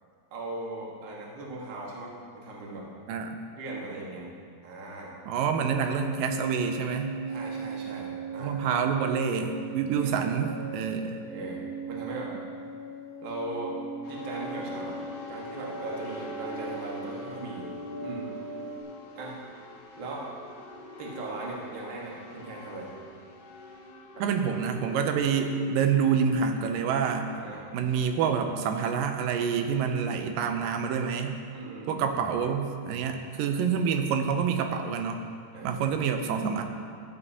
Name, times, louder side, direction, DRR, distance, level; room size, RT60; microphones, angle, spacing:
voice 1, 0.3-2.8 3.6-4.2 4.6-5.1 7.3-8.6 10.0-10.1 11.3-12.3 13.2-13.7 14.1-15.0 15.3-17.7 18.0-18.3 19.1-19.4 20.0-20.3 21.0-22.9 24.1-24.4 27.3-27.6 31.5-32.0 35.5-35.8, right 2 dB, 50° right, -3 dB, 1.5 m, -38 dB
voice 2, 5.3-7.2 8.4-11.2 24.2-27.3 27.7-31.4 31.9-35.3 35.6-36.6, right 6 dB, 85° right, 5 dB, 2.3 m, -27 dB
sound 1, 5.6-18.8, right 3 dB, 70° right, 1.6 m, -38 dB
sound 2, 14.0-28.3, left 1 dB, 70° left, 1.5 m, -45 dB
14.5 x 8.2 x 2.8 m, 2.2 s
omnidirectional pair, 3.9 m